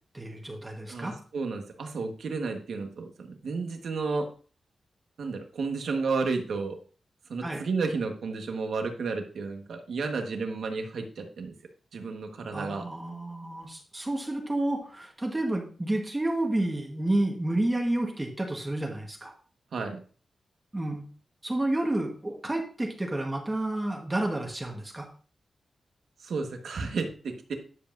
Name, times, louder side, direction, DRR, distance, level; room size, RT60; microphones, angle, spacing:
voice 1, 0.1-1.2 7.4-7.6 12.5-19.3 20.7-21.1 21.4-25.1, right 1 dB, 15° right, 1 dB, 1.2 m, -30 dB
voice 2, 0.9-4.3 5.2-6.8 7.3-11.5 11.9-12.8 19.7-20.0 26.2-27.5, right 4 dB, 75° right, 4 dB, 1.3 m, -32 dB
10.0 x 7.4 x 2.6 m, 0.40 s
wide cardioid pair, 175°, 0 cm